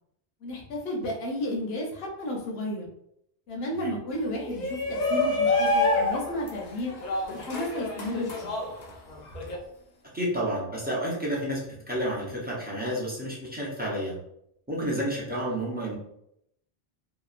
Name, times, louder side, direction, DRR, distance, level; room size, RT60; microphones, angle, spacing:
voice 1, 0.4-2.9 3.5-6.9 7.3-8.5, left 1 dB, 70° left, -1 dB, 1.0 m, -32 dB
Shout, 4.4-9.6, left 2 dB, 50° left, 0.5 m, -27 dB
voice 2, 10.1-11.6 11.9-14.2 14.7-16.0, equal, 10° right, -5 dB, 0.5 m, -30 dB
2.8 x 2.2 x 2.4 m, 0.75 s
omnidirectional pair, 1.1 m